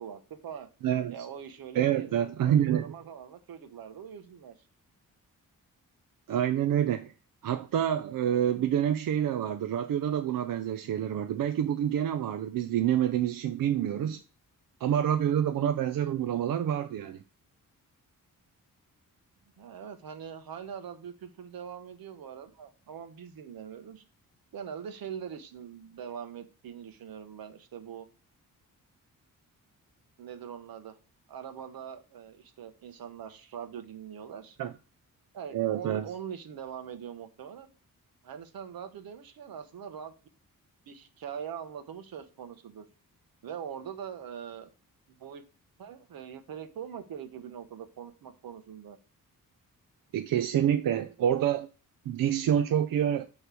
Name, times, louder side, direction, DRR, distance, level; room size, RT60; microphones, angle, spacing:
voice 1, 0.0-0.7 1.1-4.5 19.6-24.0 24.5-28.1 30.2-31.0 31.3-34.6 35.3-37.7 38.2-40.1 40.9-42.9 43.4-44.7 45.1-45.4 45.8-49.0, right 8 dB, 85° right, 1.0 m, -42 dB
voice 2, 0.8-1.1 1.7-2.9 6.3-7.1 7.4-14.2 14.8-17.2 34.6-34.7 35.5-36.1 50.1-51.7 52.1-53.3, right 10 dB, 70° right, 0.5 m, -27 dB
8.1 x 3.2 x 6.1 m
wide cardioid pair, 160°, 34 cm